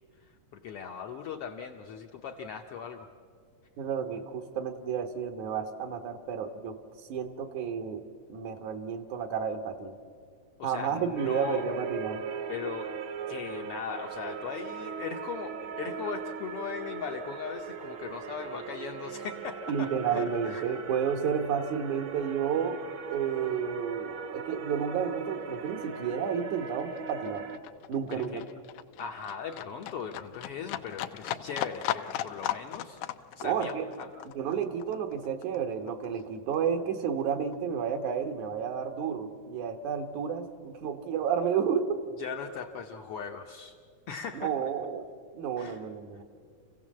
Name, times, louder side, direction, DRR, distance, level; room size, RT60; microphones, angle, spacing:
voice 1, 0.5-3.1 10.6-11.7 12.5-13.0 13.3-20.7 28.1-28.4 29.0-33.0 33.4-34.1 42.2-43.8 44.1-44.5 45.6-45.8, left 6 dB, 70° left, 3 dB, 1.4 m, -39 dB
voice 2, 3.8-6.8 7.1-8.0 8.3-10.0 10.6-12.2 19.7-22.8 23.1-27.4 27.9-28.4 33.4-33.9 34.4-42.0 44.3-45.0 45.3-46.2, right 7 dB, 75° right, 7 dB, 2.6 m, -31 dB
sound 1, 11.2-27.6, right 6 dB, 60° right, 1.4 m, -39 dB
Livestock farm animals working animals, 24.8-25.0 25.2-36.2 36.5-37.6 37.9-38.0, left 12 dB, 85° left, 2.2 m, -38 dB
27.0 x 16.5 x 7.5 m, 2.2 s
omnidirectional pair, 3.5 m